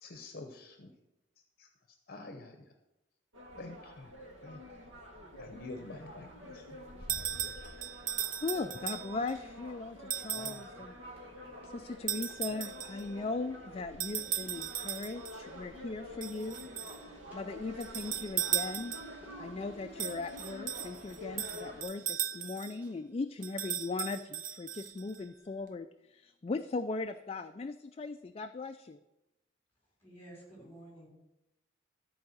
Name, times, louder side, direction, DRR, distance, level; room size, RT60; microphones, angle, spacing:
voice 1, 0.0-0.9 1.6-1.7 2.1-2.7 3.6-4.1 4.4-4.6 5.4-6.7 7.1-7.5 10.3-10.8, left 2 dB, 50° left, 5 dB, 0.9 m, -48 dB
sound 1, 3.3-21.8, left 1 dB, 85° right, 1.9 m, -48 dB
Run, 6.9-7.2 7.4-22.5 22.8-23.0 23.4-23.5 24.1-24.2, left 1 dB, 10° right, 3.7 m, -61 dB
sound 2, 7.1-9.3 10.1-10.7 12.1-13.1 14.0-15.4 16.2-17.0 17.8-19.2 20.0-22.8 23.4-25.2, right 10 dB, 45° right, 0.5 m, -37 dB
voice 2, 8.4-11.3 11.6-29.0, left 3 dB, 30° left, 8 dB, 0.3 m, -39 dB
voice 3, 30.0-31.1, right 1 dB, 10° left, -3 dB, 5.0 m, -51 dB
13.0 x 4.7 x 7.7 m, 0.96 s
head